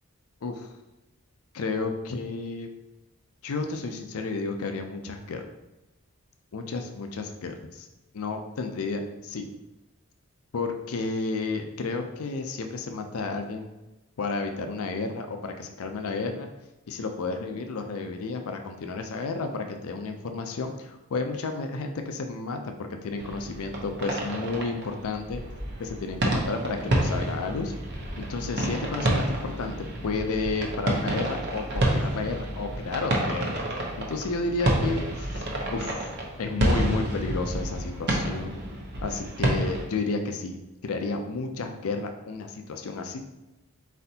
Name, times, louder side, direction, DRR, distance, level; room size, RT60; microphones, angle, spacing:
voice 1, 1.5-2.7 3.4-5.5 6.5-7.9 8.1-9.0 9.3-9.5 10.5-13.7 14.2-16.5 16.9-25.4 25.8-27.7 28.2-33.6 34.0-36.0 36.4-38.5 39.0-43.2, left 3 dB, 75° left, 5 dB, 0.5 m, -32 dB
sound 1, 23.2-39.8, right 1 dB, 50° right, 0.8 m, -29 dB
4.3 x 4.1 x 2.7 m, 1.0 s
head